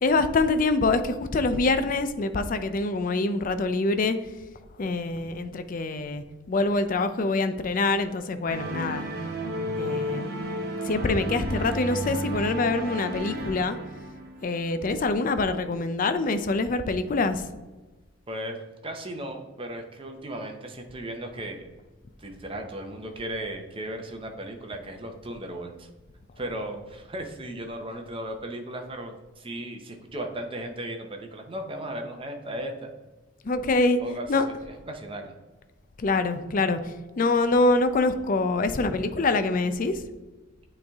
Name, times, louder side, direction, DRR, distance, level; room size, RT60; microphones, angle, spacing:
voice 1, 0.0-4.2 4.8-9.0 9.8-10.3 10.8-13.8 14.4-17.5 33.4-34.0 34.3-34.5 36.0-40.0, left 3 dB, 40° left, 10 dB, 0.4 m, -25 dB
sound 1, 8.5-14.7, right 1 dB, 50° right, 0.9 m, -32 dB
voice 2, 18.3-18.6 18.8-21.6 22.2-25.9 26.4-32.9 34.0-35.3, right 1 dB, 25° right, 4 dB, 0.7 m, -36 dB
8.5 x 3.3 x 3.5 m, 1.2 s
head